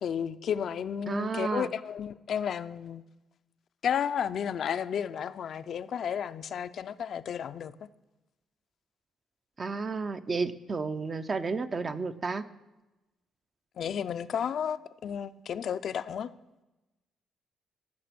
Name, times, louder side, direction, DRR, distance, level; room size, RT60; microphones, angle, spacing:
voice 1, 0.0-3.0 3.8-7.9 13.8-16.3, left 8 dB, 60° left, 0.4 m, -32 dB
voice 2, 1.1-1.7 9.6-12.4, right 4 dB, 35° right, 0.6 m, -32 dB
15.5 x 6.0 x 5.9 m
cardioid pair, 90°, 0 cm